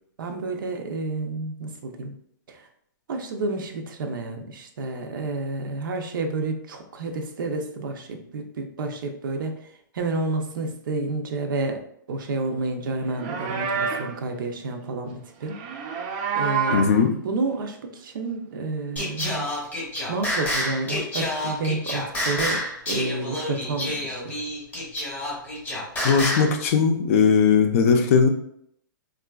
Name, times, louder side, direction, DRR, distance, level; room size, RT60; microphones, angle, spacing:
voice 1, 0.2-2.1 2.5-2.7 3.1-15.6 16.3-19.5 20.1-24.4, right 3 dB, 75° right, 5 dB, 0.6 m, -30 dB
Livestock farm animals working animals, 13.0-14.2 15.5-17.0, right 6 dB, 25° right, 0.3 m, -28 dB
voice 2, 16.7-17.1 26.0-28.3, left 6 dB, 40° left, 4 dB, 0.4 m, -18 dB
Singing, 19.0-26.5, left 1 dB, 10° left, 0.8 m, -28 dB
3.7 x 2.4 x 2.3 m, 0.69 s
hypercardioid pair, 160°, 11 cm